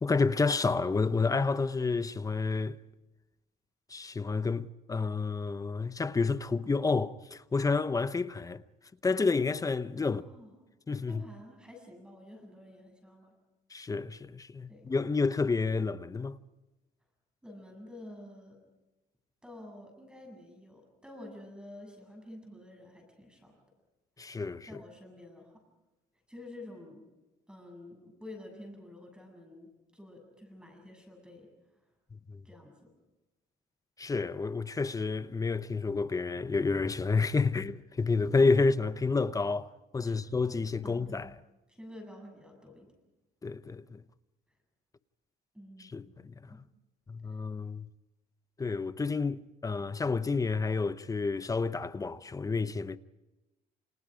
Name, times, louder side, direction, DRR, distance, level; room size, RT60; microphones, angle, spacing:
voice 1, 0.0-2.8 3.9-8.6 9.0-10.2 10.9-11.2 13.7-16.4 24.2-24.8 32.3-32.4 34.0-39.7 39.9-41.3 43.4-44.0 45.9-46.6 47.1-47.9 48.6-53.0, left 4 dB, 20° left, 0.8 m, -30 dB
voice 2, 10.1-10.5 11.1-13.3 14.7-14.9 17.4-18.6 19.4-23.6 24.7-25.6 26.3-27.0 27.5-31.5 32.4-32.9 40.0-40.3 40.8-41.3 41.7-42.9 45.5-46.6 47.3-47.4, left 1 dB, 5° right, 7.6 m, -49 dB
29.0 x 28.0 x 5.0 m
cardioid pair, 110°, 17 cm